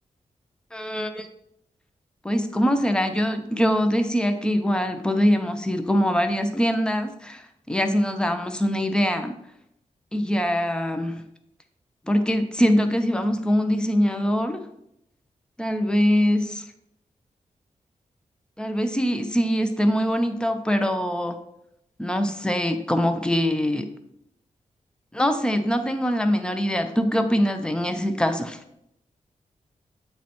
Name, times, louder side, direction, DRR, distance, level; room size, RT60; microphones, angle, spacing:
voice 1, 0.7-1.3 2.2-9.3 10.1-11.2 12.1-14.6 15.6-16.6 18.6-21.4 22.0-23.9 25.1-28.6, equal, 5° left, 7 dB, 0.5 m, -23 dB
8.9 x 3.1 x 4.3 m, 0.78 s
wide cardioid pair, 175°, 13 cm